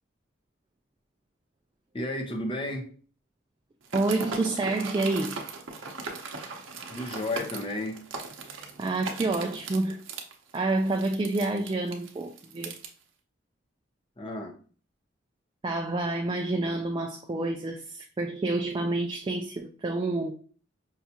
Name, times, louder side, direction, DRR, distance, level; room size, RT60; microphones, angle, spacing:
voice 1, 1.9-3.0 6.9-8.0 14.2-14.6, left 1 dB, 25° left, 0.6 m, -32 dB
sound 1, 3.8-12.9, right 4 dB, 85° right, 0.7 m, -39 dB
voice 2, 3.9-5.4 8.8-10.0 10.5-12.8 15.6-20.3, right 2 dB, 25° right, 0.3 m, -28 dB
5.4 x 2.4 x 2.8 m
head